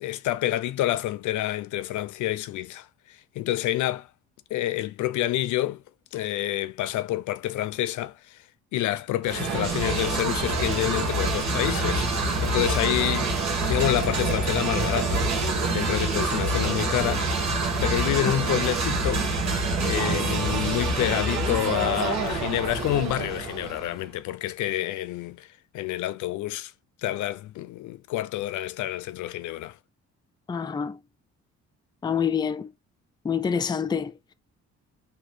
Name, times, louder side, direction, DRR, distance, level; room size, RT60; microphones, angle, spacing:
voice 1, 0.0-4.1 4.5-5.8 6.1-8.4 8.7-13.3 13.7-17.3 17.8-19.3 19.5-25.5 25.7-26.7 27.0-29.8, left 14 dB, 75° left, 0.5 m, -28 dB
sound 1, 9.2-23.9, right 2 dB, 65° right, 1.4 m, -26 dB
voice 2, 30.5-31.0 32.0-32.7 33.2-34.3, left 7 dB, 15° left, 0.4 m, -27 dB
3.9 x 2.9 x 3.1 m
cardioid pair, 90°, 30 cm